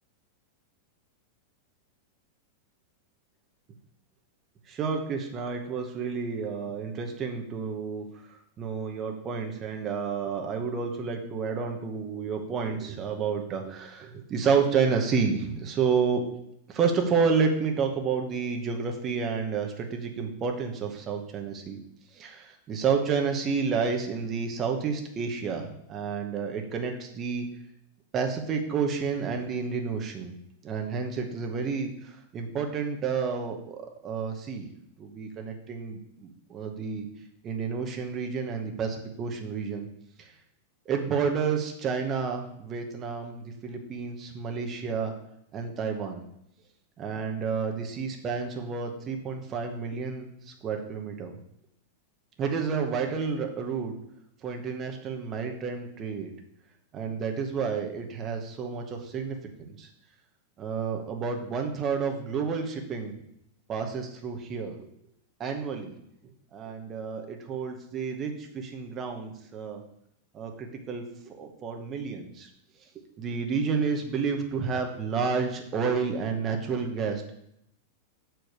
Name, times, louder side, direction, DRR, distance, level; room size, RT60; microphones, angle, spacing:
voice 1, 4.7-8.1 8.6-16.2 16.7-21.8 22.1-27.5 28.1-30.3 30.6-34.7 35.0-37.1 37.4-39.9 40.2-40.3 40.9-45.1 45.5-46.2 47.0-50.3 50.6-51.3 52.4-53.9 54.4-56.3 56.9-59.9 60.6-63.1 63.7-64.7 65.4-66.0 66.5-69.8 70.3-72.5 73.2-77.3, right 5 dB, 15° right, 3 dB, 0.9 m, -30 dB
6.7 x 4.6 x 6.6 m, 0.75 s
supercardioid pair, 180°, 0 cm